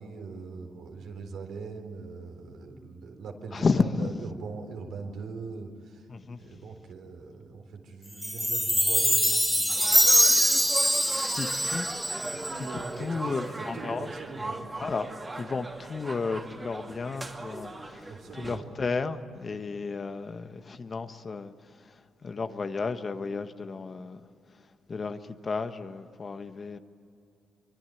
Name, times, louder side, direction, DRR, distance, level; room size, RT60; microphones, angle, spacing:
voice 1, 0.0-6.1 6.4-10.2 12.2-14.8 18.1-18.7, right 4 dB, 75° right, 3 dB, 4.1 m, -41 dB
voice 2, 3.5-4.1 6.1-6.5 11.3-11.9 12.5-14.1 14.8-15.1 15.4-21.5 22.2-24.2 24.9-26.8, left 4 dB, 40° left, 9 dB, 1.4 m, -32 dB
Chime, 8.2-12.7, equal, ahead, 0.6 m, -23 dB
sound 1, 9.7-18.6, right 2 dB, 25° right, 2.6 m, -39 dB
24.5 x 24.5 x 9.3 m, 2.4 s
cardioid pair, 90°, 0 cm